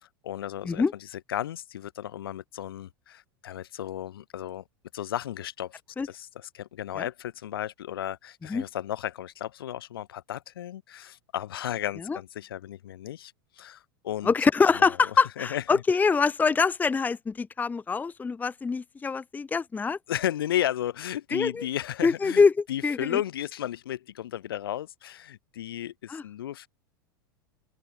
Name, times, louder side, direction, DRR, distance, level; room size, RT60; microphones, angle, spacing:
voice 1, 0.0-4.6 4.9-14.3 14.7-15.8 20.1-22.4 22.7-26.7, left 12 dB, 75° left, 3.0 m, -34 dB
voice 2, 14.2-20.0 21.3-21.6 22.0-22.5 22.8-23.2 26.1-26.2, left 5 dB, 15° left, 0.7 m, -24 dB
hypercardioid pair, 95°, 12 cm